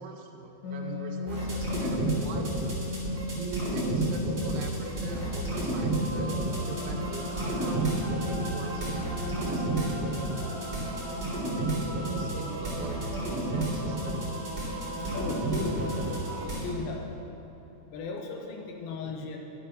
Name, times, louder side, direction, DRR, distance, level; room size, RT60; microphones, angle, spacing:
voice 1, 0.0-2.6 3.3-11.0 11.5-14.2 19.0-19.4, right 5 dB, 80° right, 3 dB, 2.5 m, -41 dB
Wind instrument woodwind instrument, 0.6-6.0, left 3 dB, 50° left, 2.8 m, -38 dB
sound 1, 1.3-16.7, right 1 dB, 15° right, 2.3 m, -31 dB
sound 2, 5.5-16.5, right 1 dB, 55° right, 2.6 m, -38 dB
voice 2, 15.1-15.9 16.4-17.1 17.9-19.4, left 4 dB, 75° left, 1 dB, 2.6 m, -36 dB
11.0 x 6.9 x 5.6 m, 2.9 s
omnidirectional pair, 4.4 m